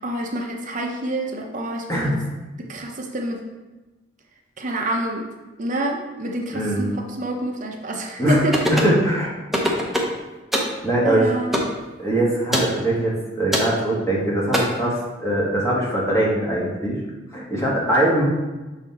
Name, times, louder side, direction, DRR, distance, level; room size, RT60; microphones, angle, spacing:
voice 1, 0.0-2.1 2.6-3.4 4.6-5.3 5.6-8.6 11.0-11.5, right 1 dB, 45° right, 1 dB, 0.7 m, -27 dB
voice 2, 6.5-6.9 8.2-8.4 8.7-9.3 10.8-11.3 12.0-17.0 17.3-18.2, right 1 dB, 15° left, -5 dB, 1.5 m, -21 dB
sound 1, 8.5-9.0 9.5-10.2 10.5-10.8 11.5-11.7 12.5-12.7 13.5-13.7 14.5-14.6, equal, ahead, 0.8 m, -21 dB
6.1 x 4.1 x 4.2 m, 1.1 s
head